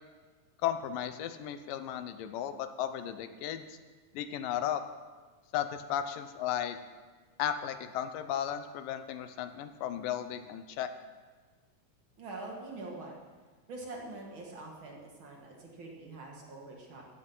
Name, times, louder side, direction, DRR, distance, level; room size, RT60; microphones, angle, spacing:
voice 1, 0.6-3.8 4.1-4.8 5.5-6.8 7.4-10.9, left 10 dB, 85° left, 10 dB, 2.5 m, -35 dB
voice 2, 12.2-13.2 13.7-17.0, right 2 dB, 40° right, -1 dB, 2.6 m, -44 dB
15.0 x 10.5 x 5.5 m, 1.4 s
omnidirectional pair, 3.8 m